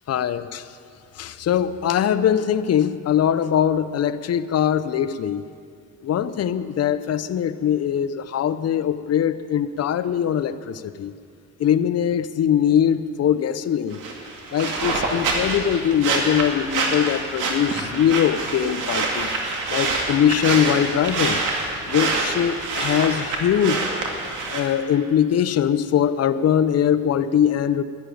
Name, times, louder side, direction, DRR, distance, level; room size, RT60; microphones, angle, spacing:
voice 1, 0.1-0.7 1.2-5.4 6.0-11.1 11.6-14.0 14.5-19.3 19.7-21.4 21.9-23.9 24.5-27.8, left 9 dB, 55° left, 12 dB, 0.7 m, -21 dB
sound 1, 13.9-24.6, right 3 dB, 85° right, 2.3 m, -26 dB
12.0 x 11.5 x 9.3 m, 2.3 s
cardioid pair, 90°, 30 cm